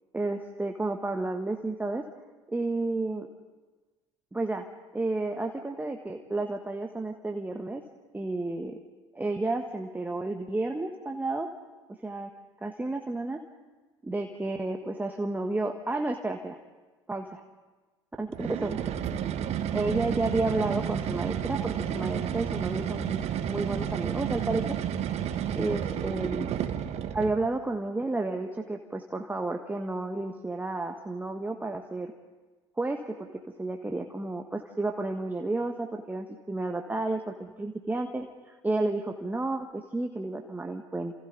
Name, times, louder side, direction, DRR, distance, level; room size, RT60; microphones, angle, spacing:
voice 1, 0.1-2.0 2.5-3.3 4.3-4.6 4.9-7.8 8.1-8.8 9.1-11.5 12.0-12.3 12.6-13.4 14.0-16.6 17.1-17.4 18.2-18.8 19.7-24.8 25.5-26.5 27.1-32.1 32.8-41.1, right 2 dB, 10° right, 3 dB, 1.5 m, -31 dB
sound 1, 18.3-27.4, right 9 dB, 45° right, 1.6 m, -31 dB
30.0 x 28.0 x 4.0 m, 1.3 s
figure-of-eight pair, 60°, 15 cm